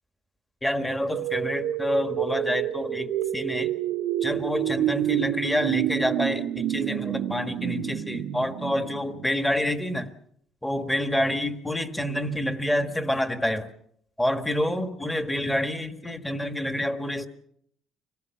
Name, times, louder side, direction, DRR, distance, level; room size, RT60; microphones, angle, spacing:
voice 1, 0.6-3.7 4.2-10.1 10.6-13.7 14.2-17.3, left 1 dB, 5° left, 8 dB, 1.4 m, -28 dB
sound 1, 0.8-9.7, right 12 dB, 75° right, 0.9 m, -29 dB
25.0 x 18.0 x 5.9 m, 0.69 s
cardioid pair, 130°, 0 cm